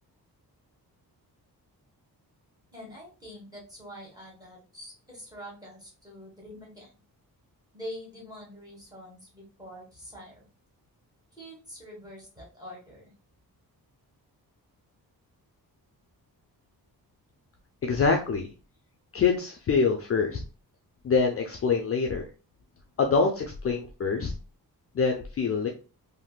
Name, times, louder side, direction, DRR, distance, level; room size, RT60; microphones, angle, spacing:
voice 1, 2.7-6.9 7.7-10.4 11.3-13.1, equal, 10° right, -2 dB, 1.4 m, -45 dB
voice 2, 17.8-18.5 19.1-20.4 21.0-22.2 23.0-24.3 24.9-25.7, left 5 dB, 40° left, 2 dB, 0.4 m, -25 dB
3.6 x 2.6 x 2.3 m, 0.34 s
wide cardioid pair, 175°, 38 cm